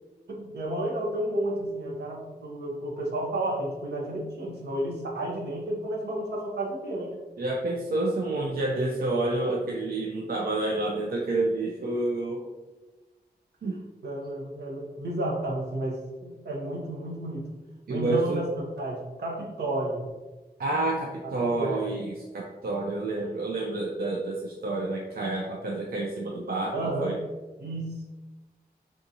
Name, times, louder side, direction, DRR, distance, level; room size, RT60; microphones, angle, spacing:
voice 1, 0.3-7.2 9.4-9.6 14.0-17.5 17.9-20.1 21.2-21.9 26.7-27.2 27.6-28.0, right 1 dB, 80° right, -2 dB, 0.8 m, -32 dB
voice 2, 7.4-12.4 13.6-13.8 17.9-18.4 20.6-27.2, right 2 dB, 65° right, -1 dB, 0.4 m, -29 dB
3.5 x 2.6 x 2.7 m, 1.2 s
wide cardioid pair, 80°, 17 cm